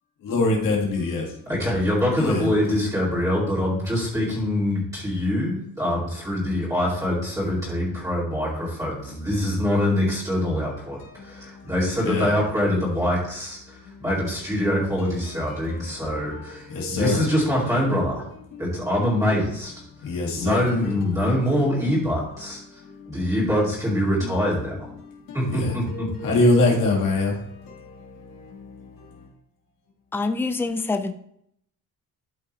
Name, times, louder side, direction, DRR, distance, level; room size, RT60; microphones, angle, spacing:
voice 1, 0.3-1.2 2.2-2.5 12.1-12.3 17.0-17.2 20.1-20.6 26.2-27.3, left 2 dB, 75° left, 1.9 m, -21 dB
voice 2, 1.5-18.2 18.6-19.7 20.4-22.8 23.1-24.8 25.3-26.3, left 1 dB, 10° right, 2.3 m, -24 dB
voice 3, 30.1-31.1, left 3 dB, 5° left, 0.4 m, -25 dB
12.5 x 5.5 x 3.1 m
cardioid pair, 160°, 34 cm